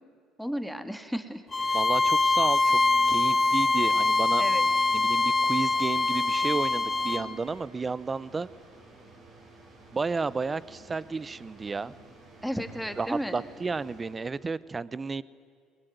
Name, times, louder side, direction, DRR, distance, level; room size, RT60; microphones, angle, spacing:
voice 1, 0.4-1.8 4.4-4.7 11.9-12.0 12.4-13.4, equal, ahead, 9 dB, 2.1 m, -34 dB
Bowed string instrument, 1.5-7.3, left 3 dB, 20° left, 1.2 m, -24 dB
sound 1, 1.6-14.6, right 2 dB, 50° right, 7.7 m, -52 dB
voice 2, 1.7-2.8 3.1-4.4 4.9-8.5 9.9-11.9 13.0-15.2, right 4 dB, 25° right, 19 dB, 0.7 m, -32 dB
Wind instrument woodwind instrument, 2.5-7.6, right 20 dB, 85° right, 1.7 m, -47 dB
21.0 x 20.5 x 9.4 m, 2.3 s
supercardioid pair, 80°, 0 cm